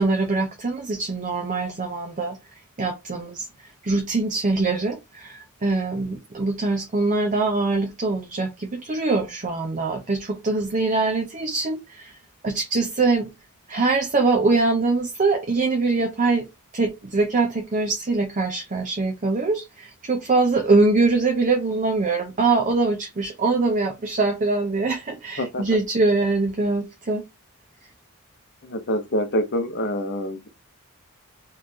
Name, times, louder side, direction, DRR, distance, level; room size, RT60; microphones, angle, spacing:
voice 1, 0.0-2.4 2.8-3.5 3.8-12.2 12.4-13.3 13.7-16.5 16.7-27.2, right 3 dB, 35° right, 0.7 m, -23 dB
voice 2, 28.6-30.5, equal, 50° left, 0.8 m, -26 dB
4.0 x 3.2 x 2.7 m
head